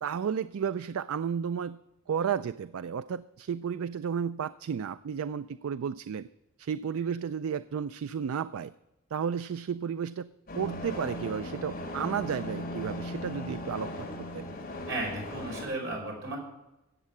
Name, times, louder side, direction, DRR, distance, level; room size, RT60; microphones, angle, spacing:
voice 1, 0.0-1.8 2.1-6.3 6.6-8.7 9.1-10.3 10.5-14.5, right 7 dB, 75° right, 14 dB, 0.3 m, -33 dB
sound 1, 10.5-15.6, left 1 dB, 40° left, 2.8 m, -38 dB
voice 2, 14.9-16.4, right 2 dB, 55° right, -1 dB, 5.2 m, -34 dB
14.0 x 8.3 x 7.2 m, 0.94 s
head